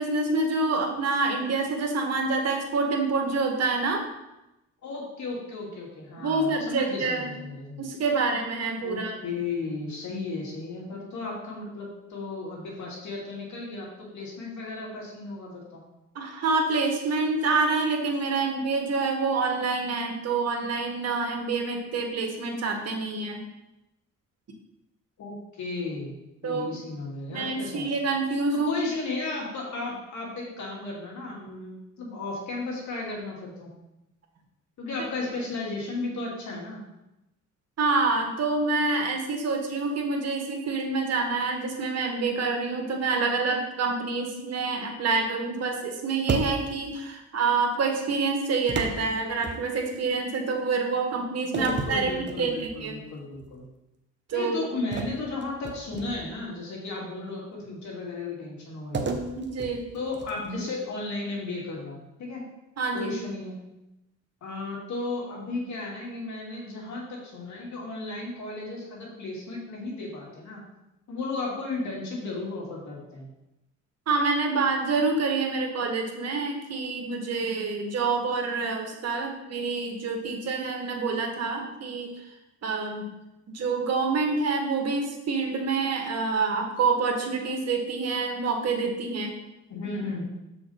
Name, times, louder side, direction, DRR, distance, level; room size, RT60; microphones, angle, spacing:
voice 1, 0.0-4.0 6.2-7.3 7.8-9.2 16.1-23.4 26.4-26.7 27.3-28.7 37.8-52.1 52.4-52.5 52.8-53.0 54.3-54.6 59.4-59.8 62.8-63.1 74.1-82.1 82.6-83.1 83.5-89.3, right 4 dB, 55° right, 2 dB, 1.6 m, -27 dB
voice 2, 4.8-7.8 8.8-15.8 25.2-26.1 26.4-27.9 28.5-33.7 34.8-36.8 51.4-53.6 54.3-59.2 59.9-62.4 62.9-63.5 64.4-70.6 71.1-73.3 89.7-90.2, left 3 dB, 70° left, -2 dB, 2.5 m, -34 dB
sound 1, 46.3-46.9 48.7-50.0 51.5-52.9 53.3-53.6 54.9-56.4 58.9-60.6, right 3 dB, 35° right, 0.9 m, -33 dB
7.1 x 5.0 x 4.3 m, 0.94 s
cardioid pair, 90°, 30 cm